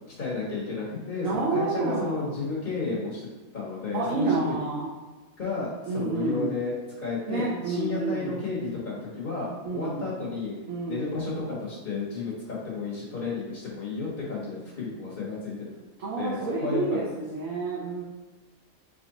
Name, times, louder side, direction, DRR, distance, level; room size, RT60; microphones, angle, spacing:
voice 1, 0.1-3.3 3.5-4.5 5.4-10.5 10.9-15.8 16.2-17.2, left 4 dB, 40° left, -6 dB, 1.3 m, -32 dB
voice 2, 1.2-2.3 3.9-4.9 5.9-6.5 7.3-8.3 9.6-10.1 10.7-11.1 16.0-18.0, right 3 dB, 75° right, -7 dB, 1.3 m, -29 dB
3.9 x 3.0 x 3.9 m, 1.2 s
omnidirectional pair, 1.4 m